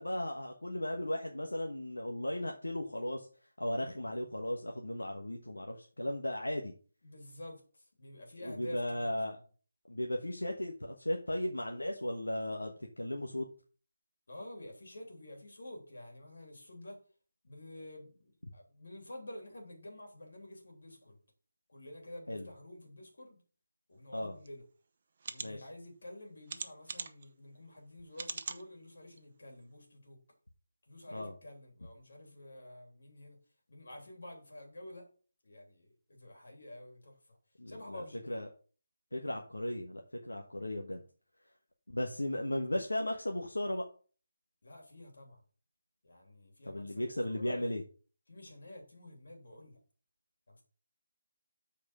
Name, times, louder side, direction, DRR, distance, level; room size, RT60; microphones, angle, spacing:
voice 1, 0.0-3.3 3.6-6.7 8.4-9.4 9.9-13.5 22.3-22.5 24.1-24.3 25.4-25.6 31.1-31.3 37.6-38.5 39.1-41.0 41.9-43.8 46.7-47.8, left 1 dB, 90° left, 2 dB, 1.2 m, -36 dB
voice 2, 7.0-9.2 14.3-17.0 17.4-21.2 21.7-23.4 23.9-24.6 25.3-30.2 30.9-33.4 33.7-35.1 35.4-37.4 37.7-38.4 44.6-45.4 46.0-47.8 48.3-49.8 50.5-50.6, left 1 dB, 65° left, 1 dB, 3.2 m, -49 dB
sound 1, 24.4-24.5 25.2-25.5 26.5-27.3 28.1-28.6 29.2-29.3 29.6-29.7, right 5 dB, 45° right, 0.8 m, -40 dB
7.3 x 4.6 x 6.1 m, 0.39 s
figure-of-eight pair, 155°, 0 cm